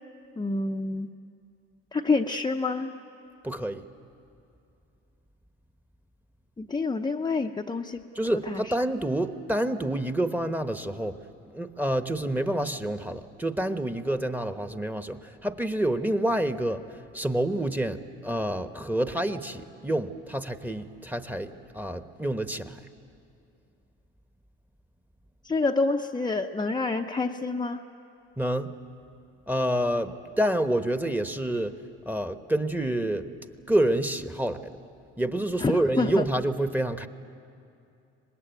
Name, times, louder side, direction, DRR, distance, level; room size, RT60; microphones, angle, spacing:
voice 1, 0.4-1.1 1.9-2.9 6.6-8.6 25.4-27.8 35.6-36.2, left 3 dB, 15° left, 2 dB, 0.7 m, -28 dB
voice 2, 3.4-3.8 8.1-11.2 11.5-16.8 17.1-22.8 28.4-28.7 29.5-31.8 32.0-33.3 33.7-34.7 35.2-37.1, right 1 dB, 5° right, 9 dB, 1.1 m, -28 dB
24.5 x 20.0 x 9.2 m, 2.6 s
supercardioid pair, 80°, 29 cm